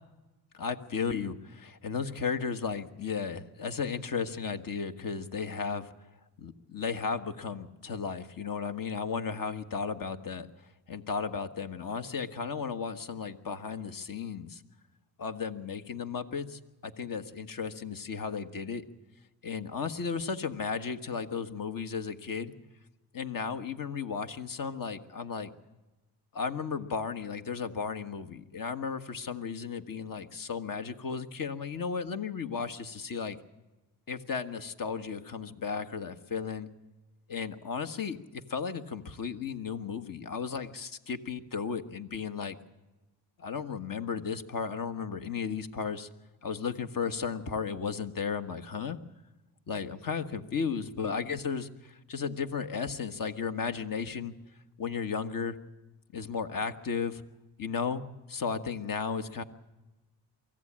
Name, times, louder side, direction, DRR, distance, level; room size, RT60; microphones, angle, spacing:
voice 1, 0.5-5.9 6.4-10.5 10.9-14.6 15.2-18.8 19.4-22.5 23.1-25.5 26.3-33.4 34.1-36.7 37.3-42.5 43.4-46.1 46.4-49.0 49.7-54.3 54.8-55.6 56.1-57.2 57.6-58.0 58.3-59.4, left 6 dB, 50° left, 8 dB, 1.5 m, -34 dB
23.5 x 15.0 x 8.8 m, 1.1 s
cardioid pair, 75°, 42 cm